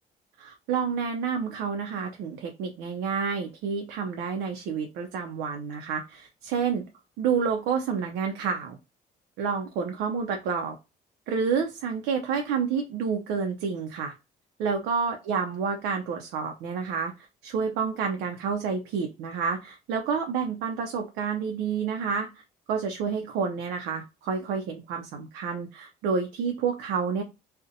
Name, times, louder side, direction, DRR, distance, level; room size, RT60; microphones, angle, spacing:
voice 1, 0.4-6.8 7.2-8.8 9.4-10.8 11.3-14.1 14.6-22.4 22.7-27.2, right 6 dB, 80° right, 4 dB, 0.4 m, -29 dB
2.5 x 2.0 x 2.6 m, 0.28 s
cardioid pair, 110°, 17 cm